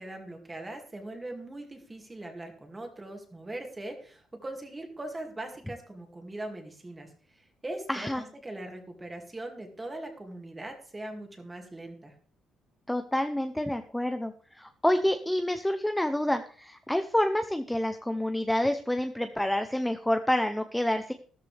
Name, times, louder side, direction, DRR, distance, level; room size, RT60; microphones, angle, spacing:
voice 1, 0.0-12.1, right 1 dB, 10° right, 3 dB, 2.3 m, -41 dB
voice 2, 7.9-8.2 12.9-21.1, left 1 dB, 5° left, 8 dB, 0.7 m, -28 dB
14.5 x 13.5 x 3.4 m, 0.43 s
cardioid pair, 175°, 0 cm